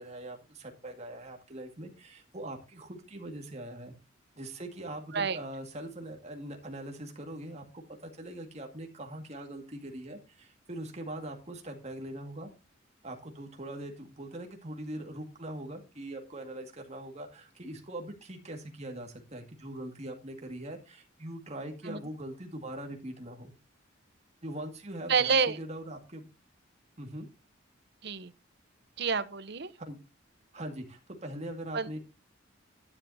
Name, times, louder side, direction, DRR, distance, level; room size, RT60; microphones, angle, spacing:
voice 1, 0.0-3.9 4.4-12.5 13.0-23.5 24.4-26.3 27.0-27.3 29.8-30.0 30.5-32.0, right 1 dB, 35° right, 2.0 m, -42 dB
voice 2, 25.1-25.6 28.0-28.3 29.0-29.7 31.7-31.9, right 5 dB, 55° right, 0.9 m, -28 dB
11.5 x 10.0 x 2.7 m
head